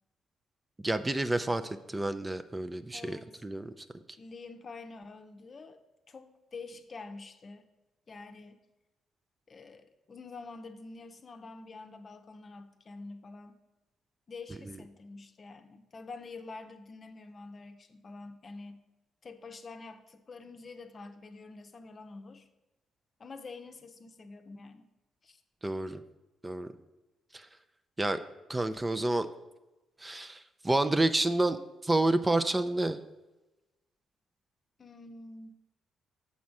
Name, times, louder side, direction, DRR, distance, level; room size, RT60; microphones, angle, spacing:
voice 1, 0.8-3.7 25.6-26.0 26.4-26.7 27.3-27.5 28.0-28.2 28.5-29.3 30.0-33.0, right 2 dB, 20° right, 10 dB, 0.5 m, -29 dB
voice 2, 2.9-3.4 4.2-5.8 6.1-7.6 8.1-8.6 9.5-13.6 14.3-18.8 19.2-22.5 23.2-24.9 25.2-25.4 34.8-35.6, left 3 dB, 45° left, 7 dB, 0.7 m, -47 dB
6.1 x 4.2 x 6.0 m, 1.0 s
supercardioid pair, 55°, 0 cm